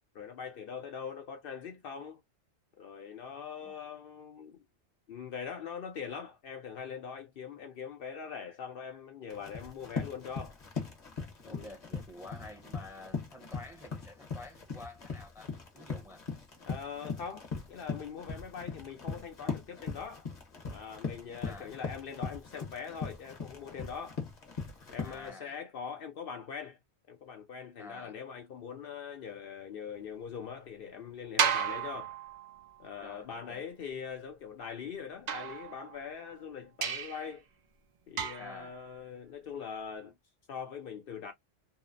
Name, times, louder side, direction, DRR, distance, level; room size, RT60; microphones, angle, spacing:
voice 1, 0.1-2.2 2.8-4.6 5.1-10.6 11.4-11.7 16.7-20.3 20.7-24.2 24.9-26.8 27.1-32.2 32.8-37.4 38.1-40.1 40.5-41.3, left 6 dB, 65° left, 0.7 m, -42 dB
Run, 9.3-25.3, left 5 dB, 45° left, 0.9 m, -40 dB
voice 2, 11.5-16.2 21.4-21.8 25.0-25.6 27.8-28.1 33.0-33.6 38.4-38.8, left 2 dB, 5° right, 0.6 m, -49 dB
sound 1, 31.4-32.8 35.3-36.2 36.8-37.3 38.2-38.7, right 8 dB, 55° right, 0.5 m, -33 dB
2.8 x 2.0 x 2.4 m
omnidirectional pair, 1.1 m